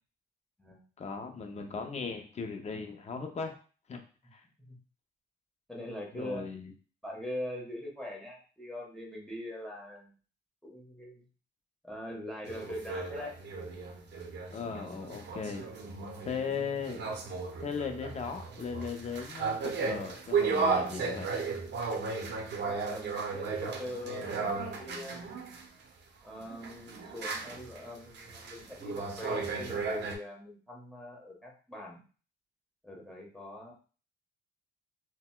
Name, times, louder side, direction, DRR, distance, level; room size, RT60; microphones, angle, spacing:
voice 1, 1.0-3.6 3.9-4.0 4.3-4.4 6.1-6.7 14.5-15.6 16.2-17.0 17.6-21.3, left 5 dB, 35° left, 5 dB, 0.6 m, -37 dB
voice 2, 5.7-6.5 7.0-10.1 10.6-11.3 11.8-13.3 22.6-25.2 26.2-32.0 32.8-33.7, left 1 dB, 5° left, -3 dB, 1.2 m, -42 dB
sound 1, 12.5-25.7 26.4-30.1, right 4 dB, 60° right, 0.6 m, -35 dB
4.0 x 2.1 x 2.2 m, 0.38 s
cardioid pair, 90°, 20 cm